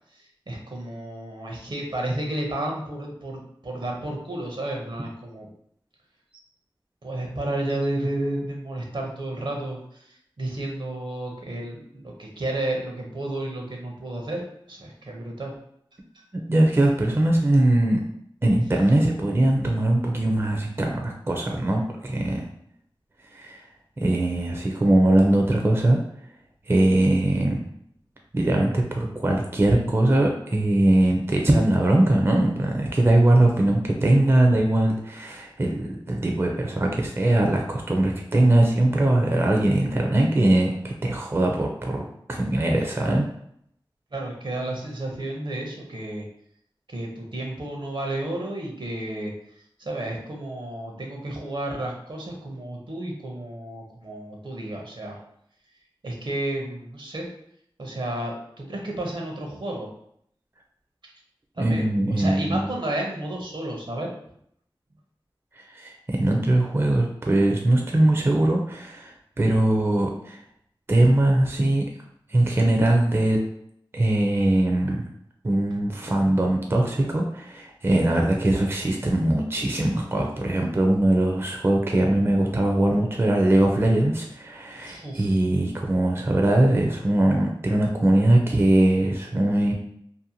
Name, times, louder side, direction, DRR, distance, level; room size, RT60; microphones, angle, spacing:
voice 1, 0.1-5.5 6.3-6.4 7.0-15.5 16.1-16.2 44.1-46.2 46.9-49.3 49.8-55.2 56.0-57.3 57.8-59.9 61.0-61.1 61.5-64.1 84.8-85.4, right 1 dB, 65° right, 0 dB, 0.7 m, -32 dB
voice 2, 16.5-18.0 18.4-22.5 23.3-23.6 24.0-26.0 26.7-27.6 28.3-43.3 61.6-62.7 65.6-70.4 70.9-71.8 72.3-73.4 73.9-75.0 75.4-89.7, right 1 dB, 30° right, 1 dB, 0.4 m, -21 dB
2.6 x 2.1 x 2.7 m, 0.71 s
wide cardioid pair, 40°, 9 cm